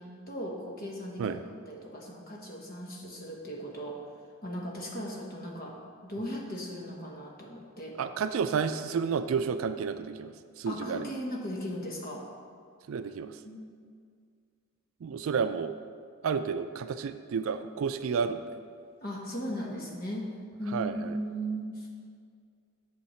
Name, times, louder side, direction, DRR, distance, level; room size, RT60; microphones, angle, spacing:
voice 1, 0.0-1.4 1.7-4.0 4.4-8.0 10.7-12.3 13.4-13.7 19.0-20.3 20.6-21.9, equal, 45° left, 0 dB, 1.2 m, -37 dB
voice 2, 8.0-11.1 12.9-13.3 15.0-15.7 16.2-18.4 20.7-21.1, right 6 dB, 70° right, 10 dB, 0.3 m, -31 dB
8.3 x 6.5 x 4.4 m, 2.1 s
head